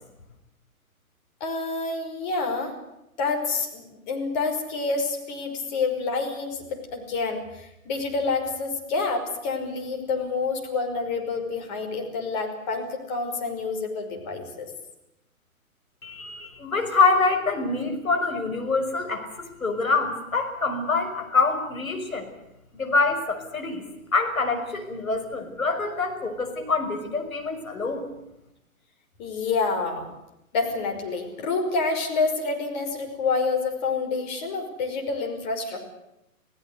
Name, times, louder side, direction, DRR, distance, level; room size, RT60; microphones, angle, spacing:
voice 1, 1.4-2.7 3.2-14.7 29.2-30.1 30.5-35.8, left 4 dB, 30° left, 3 dB, 5.5 m, -28 dB
voice 2, 16.0-22.3 22.7-23.8 24.1-28.1, left 4 dB, 70° left, 4 dB, 6.0 m, -25 dB
28.0 x 17.5 x 8.1 m, 0.87 s
figure-of-eight pair, 125°, 43 cm